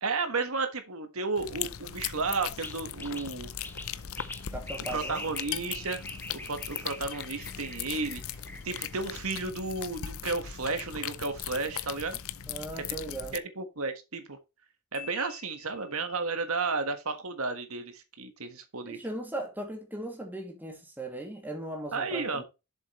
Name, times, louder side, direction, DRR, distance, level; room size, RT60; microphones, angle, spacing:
voice 1, 0.0-3.5 4.9-6.0 6.3-8.4 8.6-12.2 13.3-14.4 14.9-19.0 21.9-22.4, right 3 dB, 70° right, 1.5 m, -33 dB
sound 1, 1.4-13.4, left 9 dB, 65° left, 0.6 m, -39 dB
sound 2, 2.6-9.1, left 1 dB, 10° left, 1.1 m, -44 dB
voice 2, 4.5-5.2 12.5-13.4 18.8-22.4, right 1 dB, 10° right, 2.4 m, -38 dB
Marimba xylophone, 14.9-16.4, left 9 dB, 35° left, 3.1 m, -48 dB
7.6 x 7.3 x 3.1 m
head